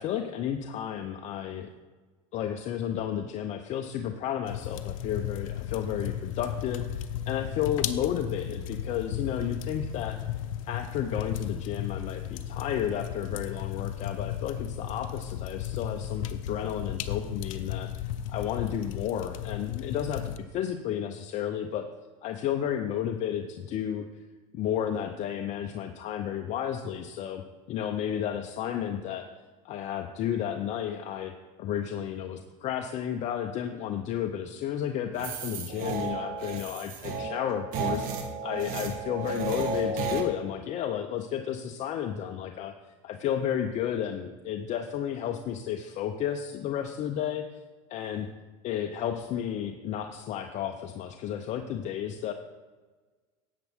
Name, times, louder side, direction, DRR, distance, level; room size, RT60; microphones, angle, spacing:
voice 1, 0.0-1.7 2.3-10.2 10.7-21.8 22.2-24.0 24.5-27.4 27.7-29.3 29.6-38.1 38.4-42.7 43.0-47.5 47.9-48.3 48.6-52.3, left 9 dB, 45° left, 5 dB, 0.6 m, -32 dB
sound 1, 4.5-20.4, left 10 dB, 85° left, 0.6 m, -35 dB
sound 2, 35.2-40.2, right 4 dB, 55° right, 1.3 m, -33 dB
10.5 x 8.2 x 3.5 m, 1.3 s
supercardioid pair, 115°, 17 cm